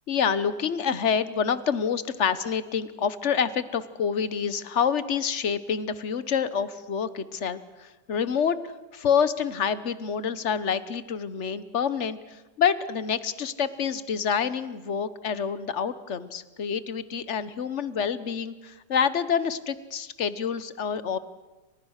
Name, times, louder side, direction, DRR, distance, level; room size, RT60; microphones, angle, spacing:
voice 1, 0.1-8.6 8.9-12.2 12.6-21.2, left 7 dB, 45° left, 14 dB, 1.4 m, -27 dB
29.5 x 26.5 x 6.6 m, 1.1 s
omnidirectional pair, 1.8 m